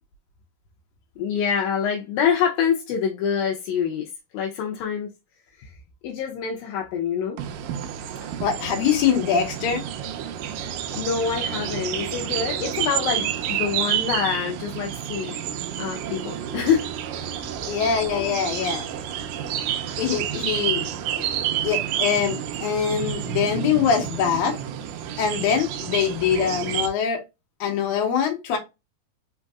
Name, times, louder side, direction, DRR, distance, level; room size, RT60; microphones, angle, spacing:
voice 1, 1.2-5.1 5.6-5.8 6.0-7.4 11.0-15.5 15.8-16.9, left 7 dB, 80° left, 2.4 m, -26 dB
sound 1, 7.4-26.9, right 10 dB, 85° right, 1.8 m, -29 dB
voice 2, 8.4-9.8 17.7-18.9 20.0-20.9 21.2-21.3 21.6-24.6 25.2-27.2 27.6-28.6, left 7 dB, 65° left, 2.3 m, -23 dB
5.3 x 3.9 x 2.3 m
omnidirectional pair, 4.3 m